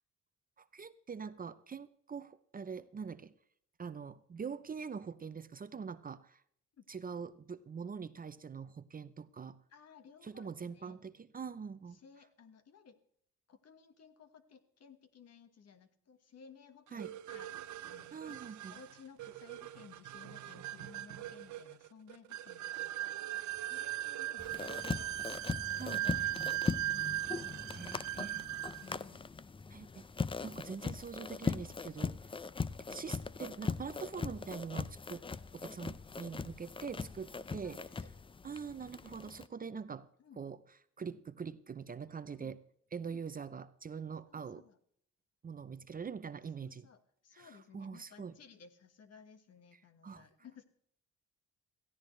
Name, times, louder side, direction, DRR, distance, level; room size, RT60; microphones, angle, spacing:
voice 1, 0.6-3.3 3.8-6.4 6.9-9.6 10.2-12.0 16.9-17.1 18.1-18.7 25.8-26.5 27.7-28.4 29.7-29.9 30.4-32.2 32.9-35.3 35.5-37.8 38.4-40.1 40.4-40.6 41.0-42.6 42.9-44.6 45.4-46.9 47.3-48.3 50.0-50.2, right 6 dB, 30° right, 13 dB, 0.6 m, -44 dB
voice 2, 9.7-11.0 11.9-13.0 13.5-23.1 23.5-25.2 25.6-27.8 28.8-29.2 32.1-32.2 37.3-38.1 40.2-40.5 42.3-42.6 43.0-43.2 44.3-44.8 46.6-50.6, left 6 dB, 55° left, 10 dB, 1.6 m, -58 dB
sound 1, 17.0-28.9, right 14 dB, 70° right, 0.7 m, -39 dB
sound 2, 24.4-39.5, left 4 dB, 20° left, 0.5 m, -40 dB
17.0 x 15.0 x 3.2 m, 0.67 s
cardioid pair, 90°, 30 cm